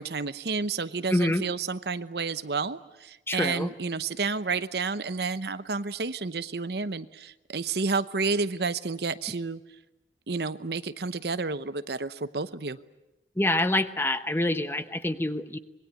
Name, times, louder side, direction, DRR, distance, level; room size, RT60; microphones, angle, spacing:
voice 1, 0.0-9.6 10.3-12.8, right 4 dB, 70° right, 13 dB, 0.9 m, -30 dB
voice 2, 1.1-1.4 3.3-3.7 13.4-15.6, left 1 dB, 15° left, 10 dB, 0.9 m, -26 dB
25.5 x 21.5 x 9.4 m, 0.97 s
head